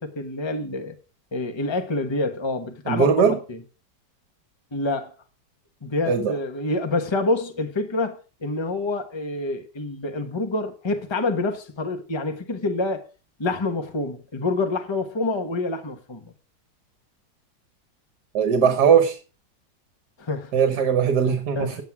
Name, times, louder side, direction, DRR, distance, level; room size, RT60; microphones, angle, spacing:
voice 1, 0.0-1.0 1.3-3.1 3.5-3.6 4.7-5.1 5.8-13.0 13.4-16.3 20.2-20.5 21.6-21.8, left 2 dB, 15° left, 1.1 m, -27 dB
voice 2, 2.9-3.4 6.1-6.3 18.3-19.2 20.5-21.8, right 7 dB, 65° right, 1.6 m, -19 dB
9.6 x 8.0 x 5.9 m
omnidirectional pair, 2.0 m